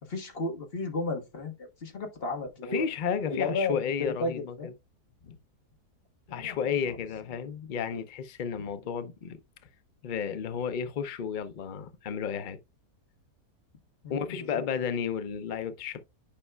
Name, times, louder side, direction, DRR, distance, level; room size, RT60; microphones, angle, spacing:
voice 1, 0.0-2.8 3.3-4.7 6.3-6.6 14.0-14.6, left 3 dB, 40° left, 1.5 m, -33 dB
voice 2, 2.7-4.5 5.2-5.4 6.3-9.4 10.0-12.6 14.1-16.0, left 7 dB, 75° left, 0.4 m, -32 dB
10.0 x 5.4 x 2.2 m
omnidirectional pair, 1.6 m